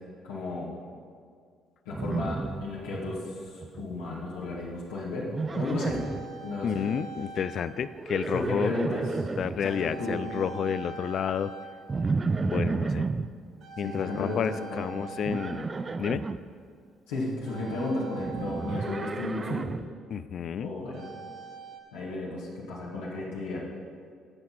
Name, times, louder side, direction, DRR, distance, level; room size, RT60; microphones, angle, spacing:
voice 1, 0.2-0.7 1.8-6.0 6.4-6.9 8.3-9.3 9.6-10.2 13.8-15.0 17.1-19.7 20.6-21.0 21.9-23.6, left 2 dB, 85° left, -6 dB, 1.7 m, -34 dB
Livestock farm animals working animals, 1.9-3.2 3.5-4.0 5.3-6.3 7.9-9.6 11.9-13.3 15.3-16.4 18.2-19.9, right 4 dB, 35° right, 0.4 m, -31 dB
sound 1, 5.8-8.0 8.2-8.5 9.7-12.4 12.7-13.1 13.6-16.3 17.4-19.8 20.9-21.8, right 5 dB, 65° right, 1.2 m, -44 dB
voice 2, 6.6-8.7 9.4-11.5 12.4-13.1 13.8-15.7 16.0-16.2 20.1-20.7, left 8 dB, 55° left, 15 dB, 0.3 m, -30 dB
16.0 x 5.8 x 4.2 m, 2.1 s
hypercardioid pair, 55°, 0 cm